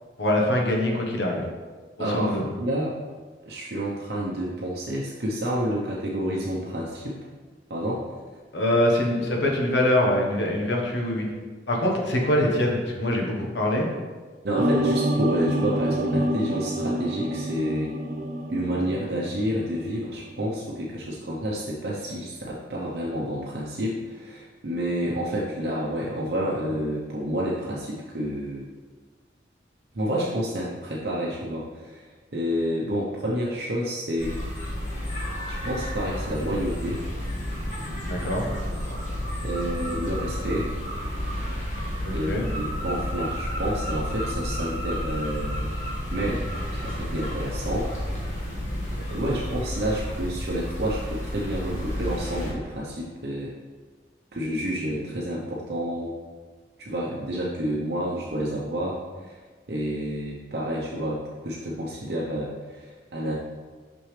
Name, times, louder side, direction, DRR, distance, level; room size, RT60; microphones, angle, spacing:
voice 1, 0.2-1.4 2.1-2.4 8.5-11.3 11.7-13.9 38.1-38.5 42.0-42.4, left 1 dB, 80° left, 0 dB, 1.2 m, -24 dB
voice 2, 2.0-3.0 3.5-7.2 7.7-8.0 14.4-17.9 18.5-28.7 29.9-32.0 32.3-34.4 35.5-37.0 39.4-40.7 42.1-45.7 46.1-46.4 46.8-47.9 49.1-53.5 54.3-56.1 56.8-59.3 59.7-63.4, equal, 65° right, -5 dB, 0.8 m, -29 dB
sound 1, 14.6-19.8 20.1-20.5, right 1 dB, 45° right, 0.5 m, -27 dB
sound 2, 34.2-52.5, equal, 40° left, 1.5 m, -31 dB
6.2 x 6.1 x 3.3 m, 1.4 s
head